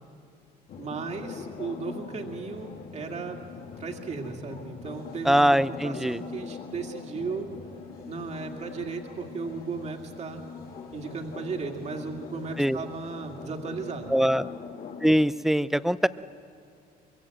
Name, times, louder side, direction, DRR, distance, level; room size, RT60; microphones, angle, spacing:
sound 1, 0.7-15.1, left 5 dB, 60° left, 2.7 m, -42 dB
voice 1, 0.8-3.4 3.8-7.5 8.1-10.4 10.9-14.2, right 4 dB, 40° right, 3 dB, 2.2 m, -35 dB
voice 2, 5.2-6.2 12.6-12.8 14.1-14.5 15.0-16.1, equal, ahead, 15 dB, 0.5 m, -22 dB
24.5 x 22.5 x 7.8 m, 2.5 s
cardioid pair, 110°, 17 cm